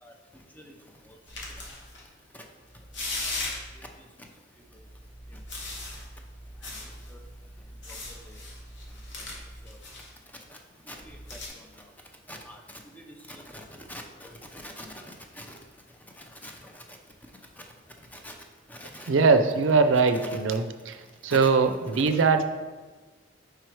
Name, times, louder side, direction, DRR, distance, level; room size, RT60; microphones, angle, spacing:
voice 1, 0.0-0.7 1.0-1.2 2.3-2.4 3.2-3.4 3.7-4.3 4.7-4.8 5.3-5.4 6.6-6.7 7.1-7.2 7.9-8.0 8.3-8.4 9.6-9.8 10.5-10.6 10.9-11.9 12.3-15.6 16.1-17.0 17.6-17.7 18.1-18.4 18.7-19.1 20.1-20.6 21.3-21.5 21.9-22.2, left 1 dB, 10° left, 2 dB, 0.6 m, -45 dB
sound 1, 1.3-2.0 2.7-3.9 4.7-10.1 11.0-11.5, left 2 dB, 70° left, 1.1 m, -38 dB
voice 2, 19.1-20.6 21.2-22.4, right 4 dB, 80° right, 8 dB, 0.5 m, -21 dB
4.8 x 4.6 x 4.5 m, 1.3 s
head